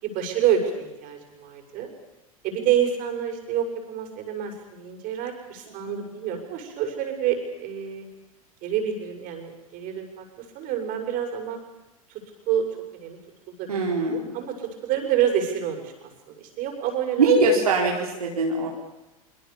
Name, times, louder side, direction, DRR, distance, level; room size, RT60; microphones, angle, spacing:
voice 1, 0.0-1.9 2.4-8.1 8.6-11.6 12.4-12.6 12.9-13.2 13.5-13.7 14.0-16.1 16.4-17.4, right 9 dB, 45° right, 4 dB, 6.8 m, -28 dB
voice 2, 13.7-14.4 17.2-18.7, right 3 dB, 80° right, -1 dB, 4.4 m, -22 dB
25.0 x 24.5 x 7.2 m, 1.0 s
hypercardioid pair, 90°, 19 cm